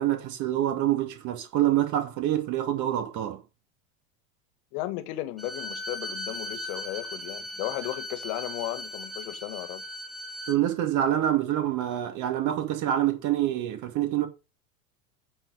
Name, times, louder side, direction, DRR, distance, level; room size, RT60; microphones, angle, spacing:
voice 1, 0.0-3.4 10.5-14.3, right 12 dB, 45° right, 2.3 m, -26 dB
voice 2, 4.7-9.8, left 16 dB, 55° left, 1.3 m, -35 dB
Bowed string instrument, 5.4-10.6, left 1 dB, ahead, 1.6 m, -38 dB
8.9 x 4.3 x 5.3 m
figure-of-eight pair, 80°, 41 cm